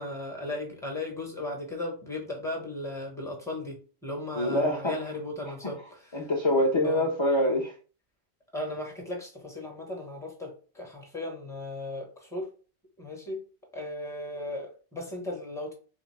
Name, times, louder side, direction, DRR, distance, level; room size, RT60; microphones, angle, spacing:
voice 1, 0.0-6.3 6.8-7.1 8.5-12.5 13.0-13.4 13.7-15.7, left 2 dB, 5° left, 0.9 m, -36 dB
voice 2, 4.3-4.9 5.4-5.5 6.1-7.7, left 1 dB, 35° left, 0.6 m, -25 dB
3.7 x 2.5 x 3.2 m
omnidirectional pair, 1.2 m